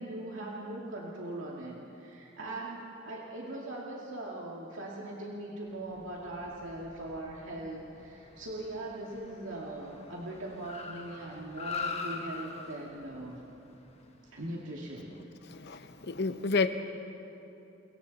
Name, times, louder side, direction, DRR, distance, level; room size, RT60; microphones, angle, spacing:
voice 1, 0.0-13.4 14.3-15.1, right 1 dB, 90° right, -3 dB, 2.3 m, -40 dB
Car, 5.8-15.3, left 4 dB, 35° left, 1.5 m, -44 dB
voice 2, 15.5-16.7, left 4 dB, 60° left, 9 dB, 1.0 m, -30 dB
30.0 x 23.0 x 4.2 m, 2.9 s
head